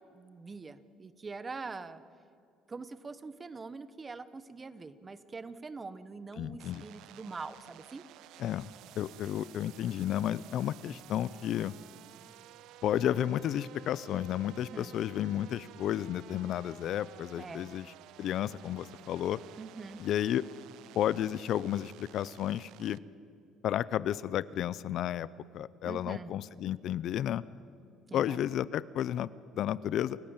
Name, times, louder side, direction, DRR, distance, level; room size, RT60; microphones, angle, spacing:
voice 1, 0.1-2.0 2.7-8.0 14.7-14.9 17.4-17.7 19.6-20.0 25.8-26.3 28.1-28.4, right 4 dB, 25° right, 14 dB, 1.1 m, -44 dB
voice 2, 6.4-6.8 8.4-8.7 8.9-11.7 12.8-17.9 18.2-19.4 20.0-20.4 20.9-23.0 23.6-25.3 25.5-27.4 28.1-29.3 29.5-30.2, left 11 dB, 60° left, 19 dB, 0.5 m, -32 dB
sound 1, 6.6-23.0, right 14 dB, 75° right, 0.6 m, -54 dB
29.0 x 15.5 x 8.9 m, 2.4 s
cardioid pair, 130°, 0 cm